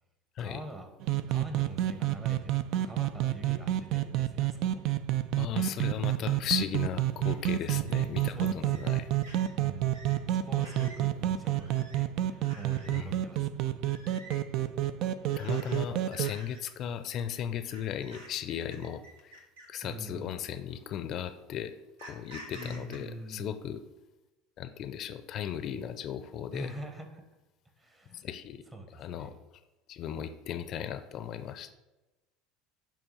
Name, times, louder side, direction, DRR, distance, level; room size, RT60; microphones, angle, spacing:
voice 1, 0.4-4.8 7.7-8.0 8.3-9.1 9.6-13.7 19.8-20.4 22.5-23.5 26.5-27.2 27.8-28.2 28.7-29.3, right 1 dB, 20° right, 5 dB, 1.2 m, -45 dB
sound 1, 1.0-16.3, right 13 dB, 60° right, 0.3 m, -30 dB
voice 2, 5.4-9.1 12.8-13.1 15.4-21.7 22.0-23.8 24.6-26.7 28.1-28.7 28.9-29.3 29.9-31.7, left 9 dB, 50° left, 11 dB, 0.4 m, -36 dB
sound 2, 7.2-7.4 7.9-8.1 8.7-8.9 9.2-9.5 9.9-10.2 10.6-11.0 11.6-12.0 12.4-13.0 13.8-14.4 15.3-15.8 16.1-16.6 17.7-19.8 20.7-20.8 22.0-23.0, right 1 dB, 85° right, 1.4 m, -49 dB
6.9 x 2.9 x 5.6 m, 1.0 s
hypercardioid pair, 85°, 0 cm